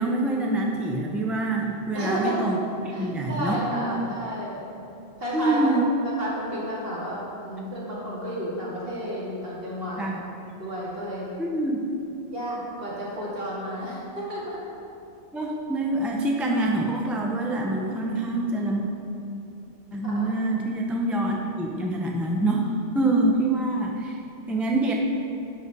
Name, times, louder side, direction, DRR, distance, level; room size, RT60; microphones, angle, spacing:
voice 1, 0.0-3.9 5.3-5.8 10.0-10.2 11.4-11.8 15.3-18.9 19.9-24.2 24.5-24.9, right 2 dB, ahead, -1 dB, 0.6 m, -26 dB
voice 2, 1.9-2.5 2.9-4.7 5.2-5.6 6.0-10.0 10.6-11.3 12.3-14.6 20.0-20.3, equal, 55° right, -7 dB, 2.4 m, -32 dB
11.5 x 5.5 x 4.8 m, 2.7 s
omnidirectional pair, 1.2 m